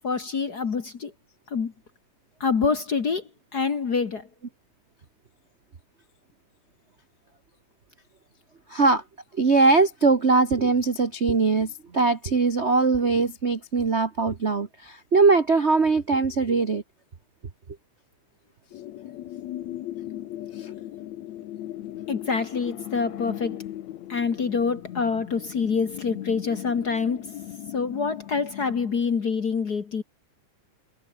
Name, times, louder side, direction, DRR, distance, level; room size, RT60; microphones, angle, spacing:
voice 1, 0.0-1.1 1.5-1.7 2.4-4.3 22.1-23.6 24.1-27.3 27.7-30.0, left 5 dB, 40° left, 1.6 m, -26 dB
voice 2, 8.7-9.0 9.4-16.8 20.6-20.7, right 4 dB, 40° right, 0.9 m, -21 dB
sound 1, 18.7-28.9, left 13 dB, 70° left, 2.3 m, -38 dB
omnidirectional pair, 3.4 m